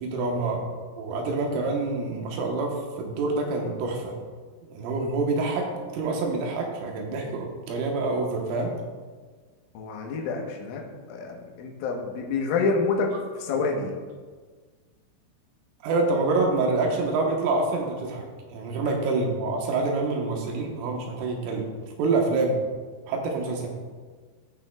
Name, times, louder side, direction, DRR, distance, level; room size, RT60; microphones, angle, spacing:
voice 1, 0.0-0.6 1.0-4.2 4.7-8.7 15.8-18.2 18.5-21.7 22.0-22.6 23.1-23.7, right 3 dB, 85° right, 1 dB, 3.7 m, -26 dB
voice 2, 9.8-10.8 11.1-13.9 18.9-19.0, left 4 dB, 85° left, 1 dB, 3.6 m, -28 dB
15.5 x 6.2 x 2.3 m, 1.5 s
omnidirectional pair, 5.5 m